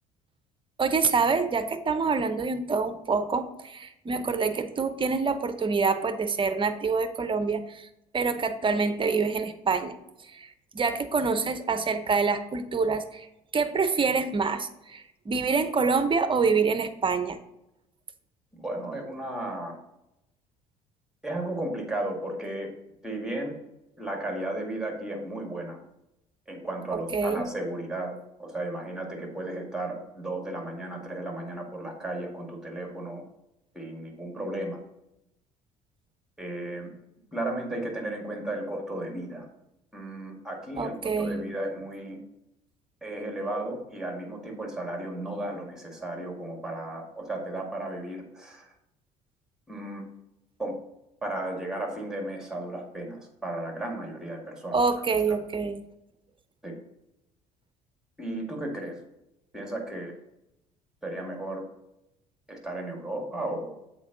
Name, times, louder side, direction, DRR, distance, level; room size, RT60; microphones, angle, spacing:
voice 1, 0.8-7.9 8.1-9.9 10.4-10.5 10.7-13.3 13.5-17.4 27.1-27.5 40.8-41.4 54.7-55.8, right 4 dB, 25° right, 9 dB, 0.8 m, -26 dB
voice 2, 18.5-19.8 21.2-22.7 23.0-23.5 24.0-25.8 26.5-33.2 33.7-34.8 36.4-36.9 37.3-39.5 39.9-42.2 43.0-48.7 49.7-50.1 50.6-50.8 51.2-54.8 55.3-55.4 56.6-56.8 58.2-59.0 59.5-60.1 61.0-61.6 62.5-63.8, right 1 dB, 5° right, 2 dB, 2.0 m, -34 dB
7.2 x 4.5 x 3.9 m, 0.88 s
hypercardioid pair, 60°, 20 cm